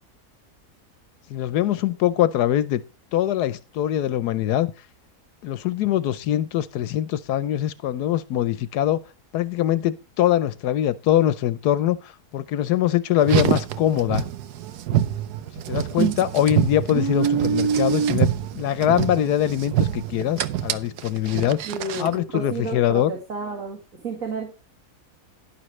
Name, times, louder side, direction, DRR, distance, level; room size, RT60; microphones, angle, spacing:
voice 1, 1.3-2.8 3.1-4.7 5.4-9.0 9.3-14.2 15.7-18.3 18.5-21.6 22.0-23.1, left 12 dB, 85° left, 1.3 m, -23 dB
Car, 13.2-22.2, right 10 dB, 85° right, 1.3 m, -25 dB
voice 2, 21.4-24.5, right 3 dB, 55° right, 2.4 m, -32 dB
11.5 x 11.0 x 3.1 m
omnidirectional pair, 1.7 m